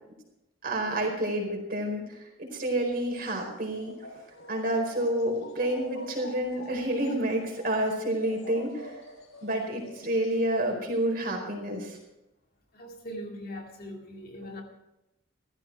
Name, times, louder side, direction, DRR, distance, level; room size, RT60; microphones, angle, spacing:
voice 1, 0.6-3.9 4.5-8.9 9.4-12.0, right 1 dB, 45° right, 1 dB, 4.5 m, -29 dB
sound 1, 2.9-10.5, left 2 dB, 75° left, 3.8 m, -47 dB
voice 2, 12.7-14.6, equal, 45° left, 1 dB, 2.2 m, -40 dB
16.0 x 14.0 x 4.7 m, 0.92 s
head